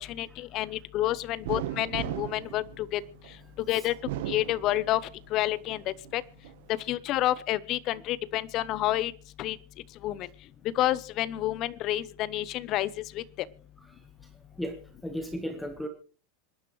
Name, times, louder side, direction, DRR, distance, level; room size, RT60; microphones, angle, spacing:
voice 1, 0.0-3.0 3.7-3.9 4.3-5.0 5.3-6.2 6.9-9.1 9.4-9.6 10.0-10.3 10.8-12.9 13.1-13.2, left 14 dB, 30° left, 19 dB, 0.6 m, -29 dB
sound 1, 1.4-3.4 3.9-5.2 5.7-6.6, right 13 dB, 60° right, 1.0 m, -36 dB
voice 2, 13.8-15.9, equal, 5° left, 7 dB, 1.1 m, -37 dB
26.0 x 10.5 x 3.1 m, 0.38 s
supercardioid pair, 170°, 0 cm